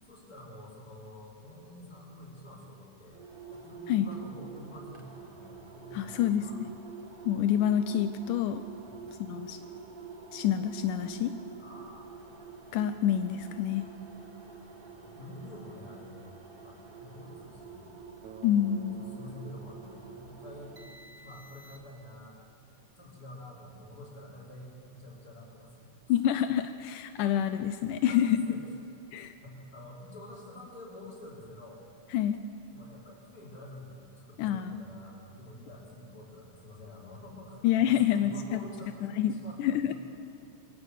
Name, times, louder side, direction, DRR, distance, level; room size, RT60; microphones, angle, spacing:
voice 1, 0.0-6.6 8.8-9.1 11.6-12.5 15.0-18.0 18.5-20.8 21.2-22.4 23.0-26.2 28.1-28.6 29.4-31.8 32.7-39.9, left 1 dB, 25° left, -5 dB, 5.3 m, -48 dB
sound 1, 3.1-22.1, right 5 dB, 45° right, 0.6 m, -48 dB
voice 2, 5.9-6.7 7.3-8.6 9.2-9.6 10.3-11.3 12.7-13.9 18.4-19.0 26.1-28.3 29.1-29.4 32.1-32.4 34.4-34.9 37.6-38.6 39.2-39.9, left 10 dB, 85° left, 9 dB, 2.2 m, -27 dB
Bass guitar, 18.2-22.2, right 5 dB, 70° right, 2.7 m, -53 dB
24.0 x 15.0 x 8.2 m, 2.6 s
omnidirectional pair, 3.6 m